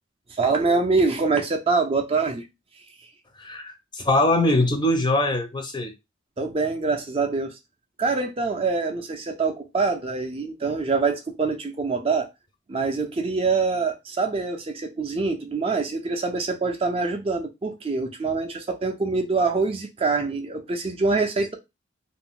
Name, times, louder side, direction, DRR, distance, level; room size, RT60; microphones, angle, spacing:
voice 1, 0.3-2.4 6.4-7.6 8.0-12.3 12.7-21.5, right 4 dB, 30° right, 0.4 m, -25 dB
voice 2, 3.4-5.9, left 1 dB, 25° left, 0.5 m, -22 dB
2.5 x 2.1 x 3.6 m
head